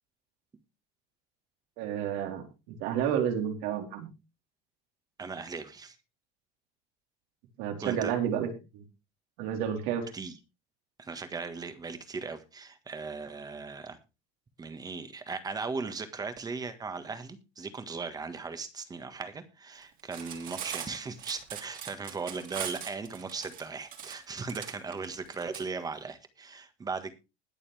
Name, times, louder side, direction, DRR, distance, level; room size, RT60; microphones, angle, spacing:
voice 1, 1.8-4.1 7.6-8.5 8.7-8.8 9.4-10.1, right 9 dB, 75° right, 4.0 m, -30 dB
voice 2, 5.2-6.0 7.8-8.1 10.1-10.3 11.0-14.0 14.6-27.1, right 4 dB, 20° right, 1.6 m, -38 dB
Cutlery silverware, 20.0-25.6, right 9 dB, 40° right, 2.9 m, -40 dB
21.0 x 7.0 x 3.4 m
cardioid pair, 150°, 21 cm